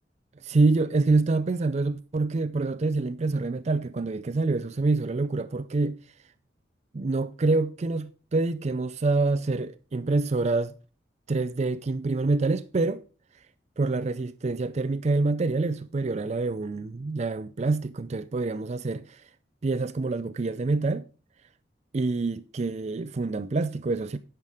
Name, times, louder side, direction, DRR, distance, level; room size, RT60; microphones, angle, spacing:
voice 1, 0.4-6.0 6.9-10.7 11.3-13.0 13.8-19.2 19.6-21.0 21.9-24.2, right 3 dB, 40° right, 0.4 m, -26 dB
11.0 x 5.9 x 4.9 m
head